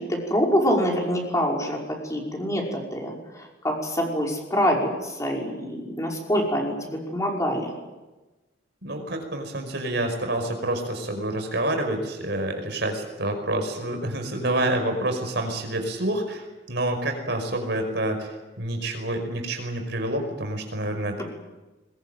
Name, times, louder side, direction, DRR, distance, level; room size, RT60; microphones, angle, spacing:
voice 1, 0.0-1.8 2.1-3.1 3.6-7.7, equal, 20° left, -1 dB, 5.6 m, -25 dB
voice 2, 8.8-21.2, right 1 dB, 65° right, 5 dB, 5.5 m, -28 dB
22.5 x 21.5 x 9.3 m, 1.1 s
head